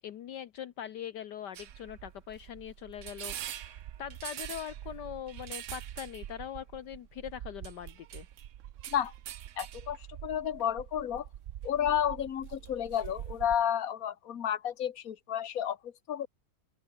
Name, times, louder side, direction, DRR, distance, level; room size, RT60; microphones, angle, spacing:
voice 1, 0.0-8.3, left 10 dB, 70° left, 1.5 m, -42 dB
sound 1, 1.5-13.6, right 11 dB, 65° right, 0.8 m, -44 dB
voice 2, 9.6-11.3 11.6-16.3, left 9 dB, 50° left, 1.7 m, -31 dB
open air
omnidirectional pair, 2.0 m